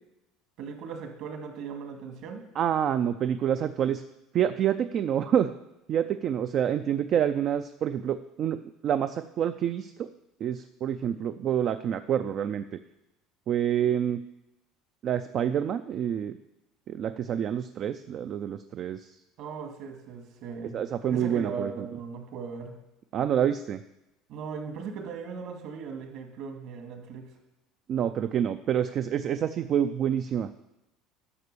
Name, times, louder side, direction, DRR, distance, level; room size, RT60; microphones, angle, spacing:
voice 1, 0.6-2.4 19.4-20.8 21.1-22.7 24.3-27.3, right 5 dB, 60° right, 3 dB, 2.1 m, -38 dB
voice 2, 2.6-4.0 4.3-5.5 5.9-10.1 10.4-12.8 13.5-14.2 15.0-16.4 16.9-19.2 20.7-21.9 23.1-23.8 27.9-30.5, right 9 dB, 40° right, 10 dB, 0.4 m, -27 dB
11.0 x 6.1 x 6.8 m, 0.92 s
cardioid pair, 150°, 0 cm